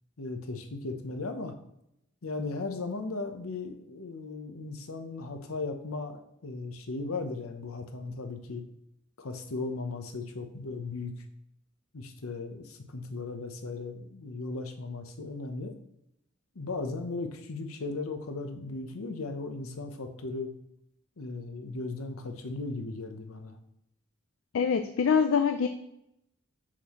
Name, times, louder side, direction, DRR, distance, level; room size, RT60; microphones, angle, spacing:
voice 1, 0.2-1.5 2.2-8.6 9.2-11.2 11.9-15.7 16.5-20.5 21.2-23.6, left 3 dB, 90° left, 6 dB, 0.8 m, -37 dB
voice 2, 24.5-25.7, left 6 dB, 70° left, 8 dB, 0.4 m, -24 dB
6.2 x 6.0 x 3.0 m, 0.81 s
head